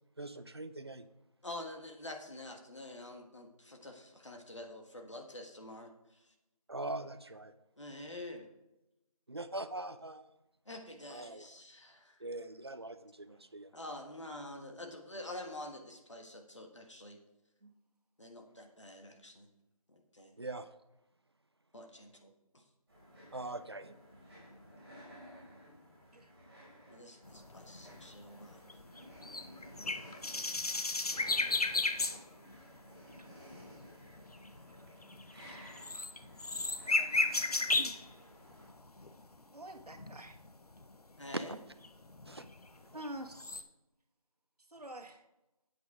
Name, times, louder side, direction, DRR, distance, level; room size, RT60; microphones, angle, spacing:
voice 1, 0.2-1.0 6.7-7.5 9.3-10.2 11.1-11.4 12.2-13.7 20.4-20.7 23.3-23.9 41.3-41.6 42.3-42.4, right 2 dB, 45° right, 11 dB, 0.6 m, -41 dB
voice 2, 1.4-6.3 7.8-8.5 10.6-12.3 13.3-13.4 13.7-17.2 18.2-19.5 19.9-20.4 21.7-22.7 26.9-28.8 41.2-41.6, left 1 dB, 50° left, 3 dB, 1.5 m, -47 dB
sound 1, 22.9-38.7, equal, 5° right, 3.9 m, -55 dB
sound 2, 27.3-32.2 32.5-32.8 33.1-38.1 38.5-39.3 39.8-41.0 41.3-41.4 41.8-43.1 43.3-43.6, left 3 dB, 80° left, 0.9 m, -35 dB
voice 3, 37.0-37.3 37.8-38.1 39.5-40.4 42.9-43.6 44.7-45.2, right 1 dB, 85° right, 4 dB, 1.5 m, -47 dB
11.0 x 8.3 x 3.6 m, 0.94 s
figure-of-eight pair, 175°, 19 cm